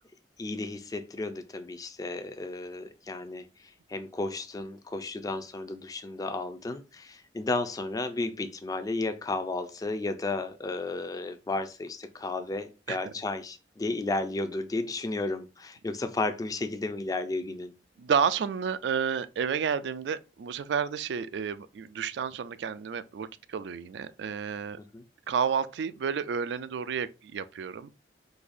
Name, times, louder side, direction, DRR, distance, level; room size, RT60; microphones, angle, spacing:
voice 1, 0.4-3.5 3.9-17.7 24.9-25.0, left 2 dB, 20° left, 0.4 m, -33 dB
voice 2, 18.0-24.8 25.3-27.9, right 7 dB, 70° right, 0.3 m, -30 dB
3.9 x 2.8 x 2.5 m
head